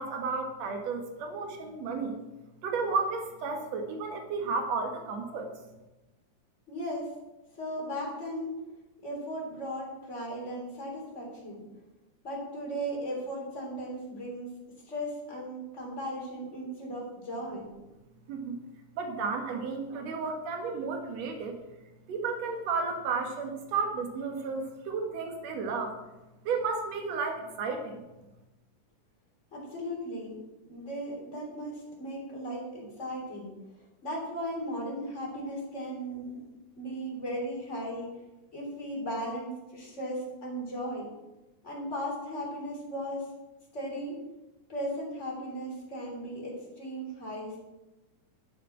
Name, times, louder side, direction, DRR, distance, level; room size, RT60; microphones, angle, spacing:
voice 1, 0.0-2.2 2.6-5.5 18.3-18.6 19.0-21.6 22.1-25.9 26.4-28.0, right 4 dB, 65° right, 4 dB, 2.5 m, -32 dB
voice 2, 6.7-7.1 7.6-8.6 9.0-11.6 12.2-14.6 14.9-17.7 29.5-30.4 30.7-33.5 34.0-36.4 36.7-38.1 38.5-41.1 41.6-43.3 43.7-44.2 44.7-47.6, equal, 25° left, -2 dB, 3.5 m, -36 dB
11.0 x 7.2 x 5.9 m, 1.0 s
omnidirectional pair, 3.4 m